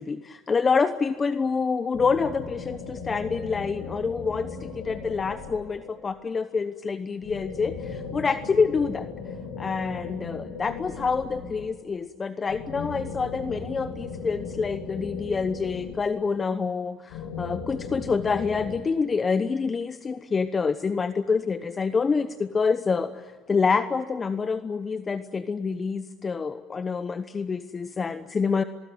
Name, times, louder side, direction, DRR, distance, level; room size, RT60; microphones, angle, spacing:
voice 1, 0.0-9.1 9.6-28.6, left 5 dB, 25° left, 12 dB, 1.0 m, -27 dB
sound 1, 1.9-6.1 7.2-11.9 12.5-16.5 17.1-18.8, left 5 dB, 70° left, 6.7 m, -37 dB
23.5 x 21.0 x 9.5 m, 1.5 s
supercardioid pair, 85°, 0 cm